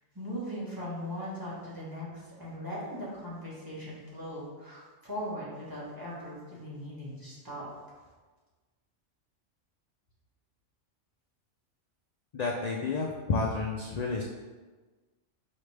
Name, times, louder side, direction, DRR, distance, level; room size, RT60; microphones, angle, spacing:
voice 1, 0.1-2.1 2.4-7.6, equal, 20° right, -8 dB, 1.3 m, -39 dB
voice 2, 12.3-14.2, left 3 dB, 80° left, -1 dB, 0.3 m, -30 dB
4.9 x 3.1 x 3.3 m, 1.3 s
omnidirectional pair, 1.2 m